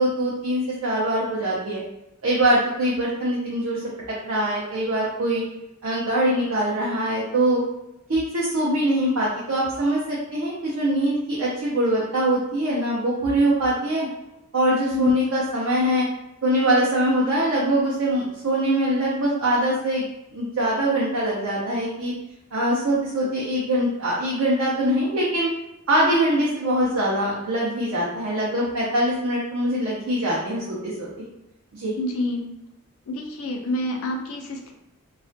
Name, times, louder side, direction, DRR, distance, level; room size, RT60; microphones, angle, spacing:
voice 1, 0.0-1.8 2.2-3.8 4.2-5.4 5.8-7.6 8.1-14.1 14.5-16.0 16.4-22.1 22.5-25.5 25.9-31.2 31.7-31.9, right 1 dB, 70° right, -6 dB, 0.5 m, -23 dB
voice 2, 32.0-32.4 33.1-34.7, left 1 dB, 80° left, 3 dB, 0.4 m, -27 dB
2.3 x 2.1 x 2.5 m, 0.87 s
head